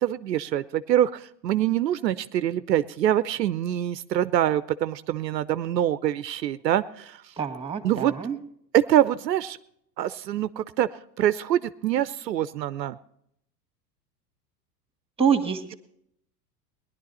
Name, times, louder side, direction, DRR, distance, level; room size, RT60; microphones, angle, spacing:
voice 1, 0.0-7.2 7.8-8.1 8.7-9.6 10.0-10.9 11.2-13.0, right 11 dB, 80° right, 15 dB, 0.6 m, -25 dB
voice 2, 7.4-8.4 15.2-15.8, right 7 dB, 10° right, 8 dB, 1.9 m, -26 dB
19.0 x 11.0 x 4.1 m, 0.72 s
figure-of-eight pair, 80°, 49 cm